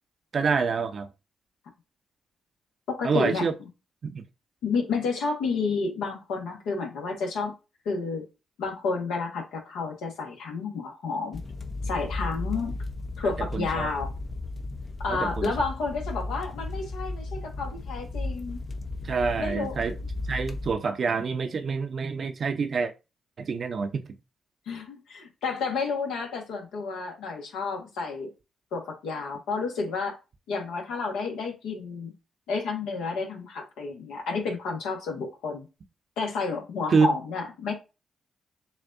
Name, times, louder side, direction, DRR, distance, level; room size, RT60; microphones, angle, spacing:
voice 1, 0.3-1.1 3.0-3.5 4.0-4.2 13.2-13.9 15.1-15.5 19.0-19.9 20.3-22.9 23.4-24.0 36.9-37.1, right 5 dB, 55° right, 0.7 m, -27 dB
voice 2, 2.9-3.7 4.6-7.5 7.8-8.2 8.6-11.4 11.8-12.7 13.2-14.1 15.0-18.6 19.4-19.8 24.7-28.3 28.7-30.2 30.5-32.1 32.5-35.7 36.2-37.7, left 4 dB, 80° left, 1.4 m, -30 dB
sound 1, 11.3-20.7, left 2 dB, 40° left, 0.7 m, -34 dB
7.0 x 2.6 x 2.6 m
supercardioid pair, 50°, 0 cm